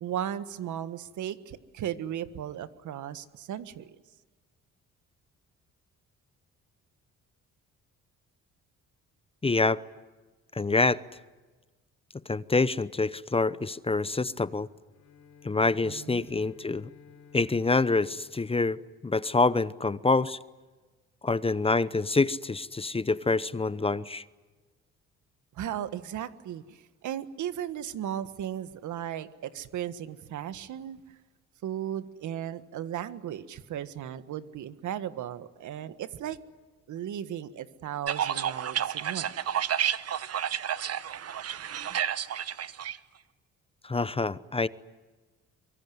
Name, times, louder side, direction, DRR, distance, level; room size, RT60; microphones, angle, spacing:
voice 1, 0.0-4.0 15.8-16.3 25.5-31.2 31.6-36.4 36.9-39.3, right 10 dB, 75° right, 1.6 m, -36 dB
voice 2, 9.4-9.8 10.5-11.0 12.3-14.7 15.4-16.9 17.3-20.4 21.2-24.2 43.8-44.7, left 3 dB, 20° left, 0.8 m, -26 dB
Bowed string instrument, 14.8-19.4, left 6 dB, 65° left, 3.5 m, -56 dB
sound 1, 38.1-43.0, right 9 dB, 55° right, 1.1 m, -30 dB
24.0 x 23.5 x 9.6 m
cardioid pair, 90°, 30 cm